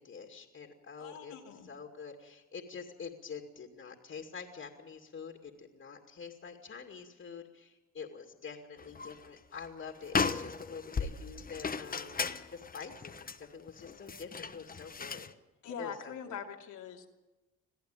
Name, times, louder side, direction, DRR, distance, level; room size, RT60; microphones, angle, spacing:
voice 1, 0.0-15.2 15.8-16.4, left 6 dB, 45° left, 3 dB, 2.4 m, -46 dB
voice 2, 1.0-1.7 15.6-17.1, left 7 dB, 80° left, 1 dB, 2.6 m, -43 dB
sound 1, 8.8-9.3 9.6-9.7 10.0-15.3, left 5 dB, 30° left, 1.1 m, -36 dB
23.0 x 14.5 x 9.1 m, 1.1 s
cardioid pair, 90°, 30 cm